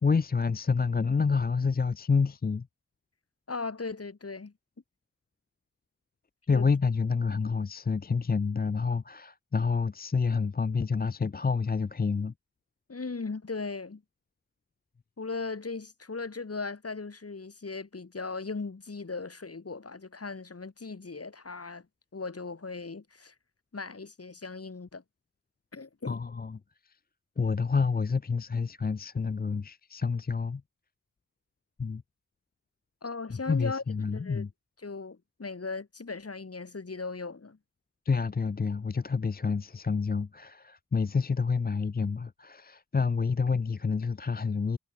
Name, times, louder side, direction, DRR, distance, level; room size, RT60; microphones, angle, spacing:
voice 1, 0.0-2.7 6.5-12.3 26.1-26.6 26.8-27.0 27.4-30.6 31.8-32.0 33.3-34.5 38.1-44.8, left 5 dB, 30° left, 0.5 m, -28 dB
voice 2, 3.5-4.5 6.5-6.7 12.9-14.0 15.2-21.9 22.1-23.3 23.7-25.0 25.7-26.2 33.0-34.4 34.8-37.6, left 4 dB, 50° left, 2.3 m, -38 dB
wide cardioid pair, 65°, 31 cm